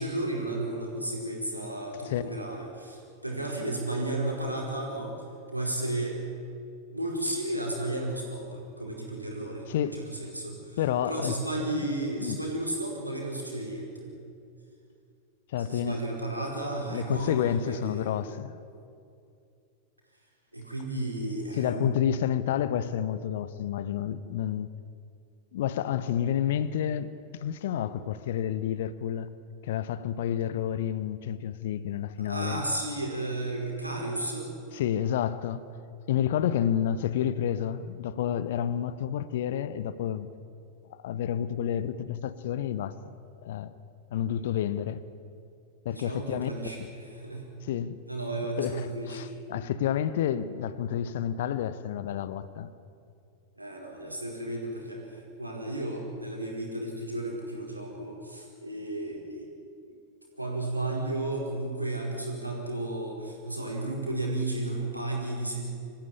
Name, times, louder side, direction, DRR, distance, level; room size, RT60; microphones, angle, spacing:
voice 1, 0.0-5.1 5.5-6.2 6.9-10.8 11.0-14.2 15.7-18.1 20.5-22.2 32.2-34.5 45.9-47.4 48.1-49.3 53.6-59.5 60.4-65.7, right 1 dB, 85° right, 4.8 m, -33 dB
voice 2, 2.1-2.4 9.7-10.1 10.8-11.4 12.2-12.4 15.5-16.0 16.9-18.6 21.6-24.7 25.5-27.1 27.4-29.3 29.6-32.6 34.7-35.6 36.1-40.3 41.0-43.1 43.4-43.7 44.1-45.0 45.8-46.5 46.8-46.9 47.6-48.0 48.6-52.7, left 10 dB, 55° left, 0.9 m, -29 dB
25.0 x 15.0 x 9.9 m
figure-of-eight pair, 90°, 0 cm